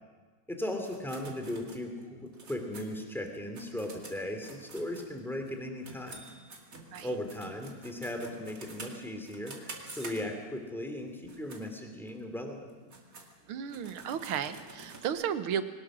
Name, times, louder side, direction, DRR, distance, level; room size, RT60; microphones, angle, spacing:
voice 1, 0.5-6.2 7.0-12.7, left 1 dB, ahead, 4 dB, 2.5 m, -37 dB
sound 1, 0.8-5.5 5.8-10.6 11.1-11.6 12.1-12.2 12.7-15.1, right 3 dB, 40° right, 2.6 m, -48 dB
voice 2, 13.5-15.6, right 8 dB, 80° right, 11 dB, 1.9 m, -34 dB
22.0 x 19.0 x 6.2 m, 1.4 s
omnidirectional pair, 2.3 m